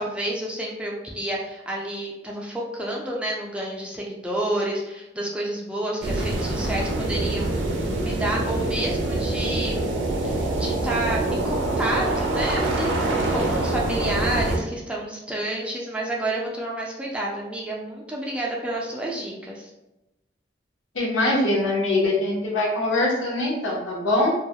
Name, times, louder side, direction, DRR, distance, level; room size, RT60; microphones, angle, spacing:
voice 1, 0.0-7.5 8.0-9.9 10.2-13.0 13.3-19.7, right 1 dB, 5° right, -4 dB, 0.3 m, -30 dB
sound 1, 6.0-14.6, right 2 dB, 75° right, 0.4 m, -25 dB
voice 2, 20.9-24.3, left 2 dB, 85° left, -3 dB, 0.7 m, -23 dB
2.2 x 2.0 x 2.7 m, 0.97 s
head